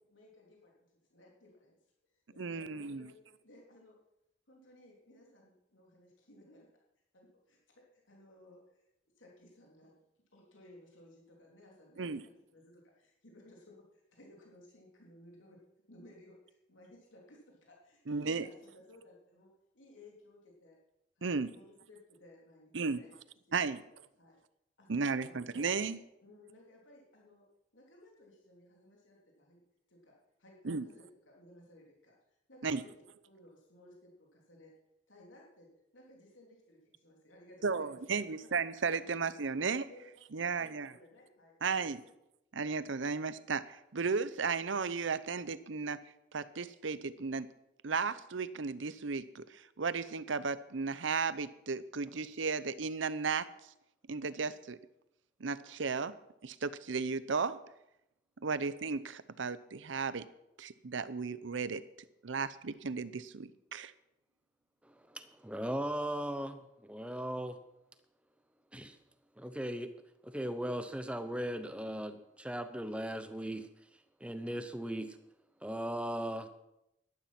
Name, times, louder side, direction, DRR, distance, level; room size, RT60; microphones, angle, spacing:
voice 1, 0.1-0.8 1.1-1.8 2.1-4.0 4.5-6.7 7.1-8.9 9.2-15.6 15.9-20.8 21.2-23.1 23.5-23.8 24.2-24.4 24.8-25.7 26.2-27.5 27.7-29.6 29.9-32.9 33.2-34.7 35.1-38.6 39.0-39.2 39.9-40.1 40.3-42.1, left 1 dB, 85° left, -2 dB, 3.3 m, -59 dB
voice 2, 2.4-3.1 12.0-12.2 18.1-18.5 21.2-21.5 22.7-23.0 23.5-23.8 24.9-26.0 30.6-30.8 32.6-32.8 37.6-39.9 40.3-40.9 41.6-42.0 42.5-46.0 46.3-47.5 47.8-53.5 54.1-54.8 55.4-56.1 56.4-57.6 58.4-60.3 60.6-61.8 62.2-63.9, right 5 dB, 75° right, 15 dB, 0.7 m, -34 dB
voice 3, 64.8-67.6 68.7-69.0 69.4-69.9 70.2-73.7 74.2-75.2 75.6-76.5, right 1 dB, 5° right, 9 dB, 0.9 m, -38 dB
12.5 x 11.5 x 5.9 m, 0.86 s
head